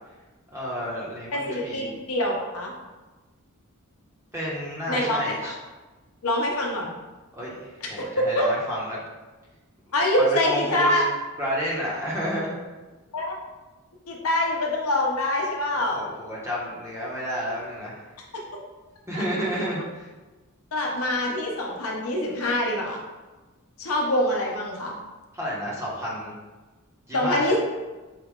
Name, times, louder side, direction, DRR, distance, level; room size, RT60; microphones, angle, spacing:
voice 1, 0.5-1.9 4.3-5.5 7.3-9.0 10.2-11.0 11.4-12.5 15.8-18.0 19.1-20.1 25.3-26.3 27.1-27.5, equal, 15° right, -6 dB, 1.0 m, -30 dB
voice 2, 1.3-2.7 4.9-5.5 6.2-6.9 8.0-8.5 9.9-11.1 13.1-13.4 14.1-16.1 19.1-19.2 20.7-23.0 23.8-24.9 27.1-27.6, left 1 dB, 85° left, -1 dB, 0.8 m, -25 dB
4.7 x 2.4 x 3.6 m, 1.2 s
head